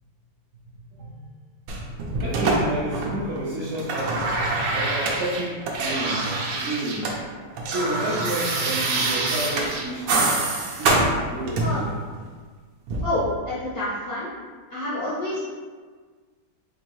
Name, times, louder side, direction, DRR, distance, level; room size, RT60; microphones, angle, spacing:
voice 1, 0.9-1.3 2.2-4.3 4.7-7.1 7.6-10.4 10.8-12.0, right 1 dB, 75° right, -6 dB, 0.6 m, -31 dB
sound 1, 1.7-3.4 3.6-7.2 7.4-11.9 12.9-13.0, right 2 dB, 90° right, 1.4 m, -25 dB
voice 2, 13.0-14.3 14.7-15.4, left 1 dB, 75° left, -9 dB, 0.5 m, -28 dB
4.4 x 2.7 x 2.9 m, 1.5 s
omnidirectional pair, 2.1 m